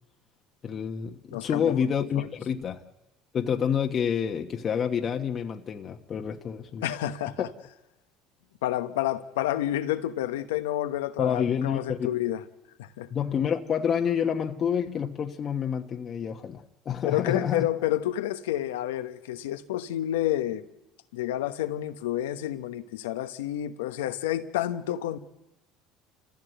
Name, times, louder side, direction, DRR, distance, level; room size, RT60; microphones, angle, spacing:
voice 1, 0.6-2.8 3.3-6.9 11.2-12.1 13.1-17.7, left 8 dB, 45° left, 1.3 m, -28 dB
voice 2, 1.3-1.8 2.2-2.3 6.8-7.5 8.6-12.4 12.8-13.1 17.0-20.6 21.1-25.2, left 13 dB, 90° left, 1.0 m, -29 dB
29.0 x 15.5 x 8.0 m
supercardioid pair, 85°, 0 cm